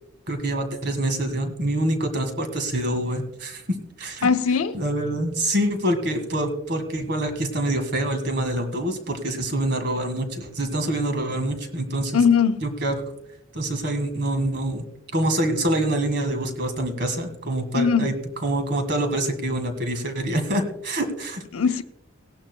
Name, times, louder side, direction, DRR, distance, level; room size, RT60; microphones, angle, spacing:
voice 1, 0.3-3.6 4.0-4.3 4.7-12.2 12.6-13.0 13.5-14.9 15.1-18.1 18.4-21.4, right 1 dB, 50° right, 1.8 m, -26 dB
voice 2, 4.2-4.8 12.1-12.6 17.7-18.1 21.5-21.8, left 6 dB, 75° left, 0.7 m, -20 dB
18.5 x 11.5 x 2.2 m
head